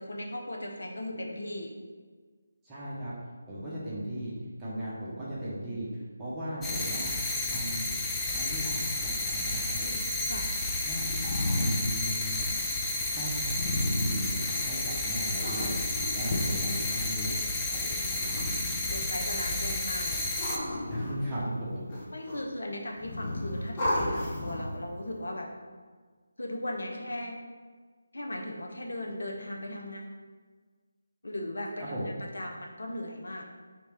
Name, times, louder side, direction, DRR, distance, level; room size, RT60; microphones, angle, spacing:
voice 1, 0.0-1.7 3.5-3.7 9.8-10.5 16.3-16.9 18.0-18.3 18.9-20.3 22.1-25.5 26.4-27.4 28.1-30.0 31.2-33.4, left 1 dB, 70° left, 1 dB, 0.7 m, -38 dB
voice 2, 2.6-3.1 3.5-4.3 4.6-9.9 10.8-11.1 11.5-12.5 13.1-15.7 16.1-18.4 20.9-21.8 31.8-32.1, equal, 10° right, -10 dB, 0.9 m, -37 dB
sound 1, 6.6-20.6, left 2 dB, 10° left, 0.3 m, -31 dB
sound 2, 10.5-14.9 15.4-17.3 18.0-19.2 20.0-21.6 21.9-22.6 22.9-24.8, left 1 dB, 25° left, 0.8 m, -33 dB
3.2 x 2.9 x 4.6 m, 1.5 s
figure-of-eight pair, 160°, 0 cm